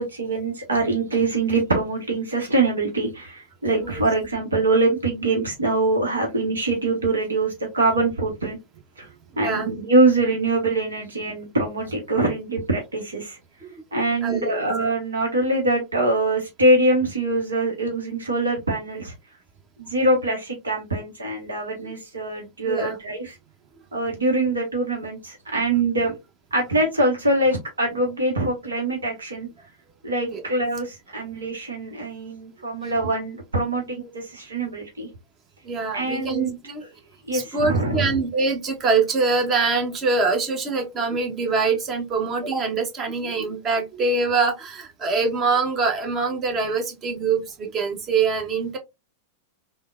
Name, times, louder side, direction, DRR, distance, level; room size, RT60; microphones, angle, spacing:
voice 1, 0.0-8.6 9.0-9.1 9.4-13.4 13.9-19.1 19.8-23.4 23.9-26.2 26.5-29.5 30.0-35.1 35.9-36.9 37.3-38.2, right 2 dB, 80° right, 0.9 m, -23 dB
voice 2, 9.3-9.7 14.2-14.6 21.8-21.9 22.6-23.0 30.3-30.4 32.8-32.9 35.6-36.8 37.3-48.8, right 4 dB, 30° right, 0.9 m, -24 dB
3.6 x 2.1 x 2.4 m
figure-of-eight pair, 90°, 0 cm